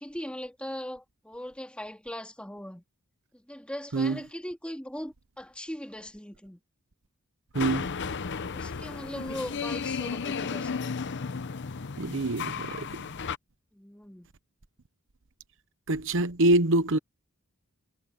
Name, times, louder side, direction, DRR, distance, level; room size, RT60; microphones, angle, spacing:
voice 1, 0.0-2.8 3.3-6.6 8.4-10.7 13.7-14.3, equal, 5° left, 3.1 m, -39 dB
sound 1, 7.5-13.4, left 5 dB, 55° left, 0.7 m, -34 dB
voice 2, 7.5-7.9 12.0-13.0 15.9-17.0, right 2 dB, 65° right, 0.9 m, -25 dB
head